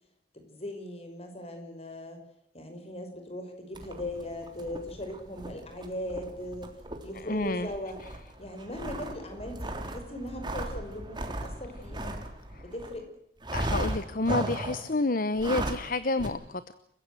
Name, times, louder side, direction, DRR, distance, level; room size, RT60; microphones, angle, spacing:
voice 1, 0.3-2.2 2.5-6.7 7.0-8.0 8.4-12.3 12.6-13.1, left 1 dB, 35° left, 5 dB, 5.8 m, -39 dB
sound 1, 3.7-13.0 13.4-14.9 15.3-15.9 16.2-16.3, right 1 dB, 25° right, 3.3 m, -36 dB
voice 2, 7.2-7.7 13.5-16.6, left 2 dB, 55° left, 14 dB, 1.0 m, -29 dB
29.5 x 15.5 x 8.1 m, 0.74 s
head